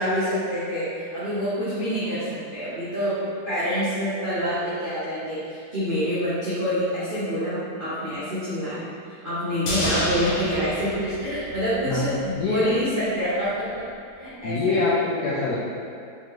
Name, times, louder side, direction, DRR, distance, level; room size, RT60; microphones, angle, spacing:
voice 1, 0.0-3.2 3.4-13.9 14.1-14.8, equal, 90° right, -12 dB, 0.4 m, -27 dB
sound 1, 9.7-12.0 12.3-12.4, equal, 65° left, 1.6 m, -29 dB
voice 2, 14.4-15.6, left 3 dB, 80° left, -8 dB, 0.8 m, -24 dB
3.7 x 3.6 x 3.0 m, 2.3 s
omnidirectional pair, 2.3 m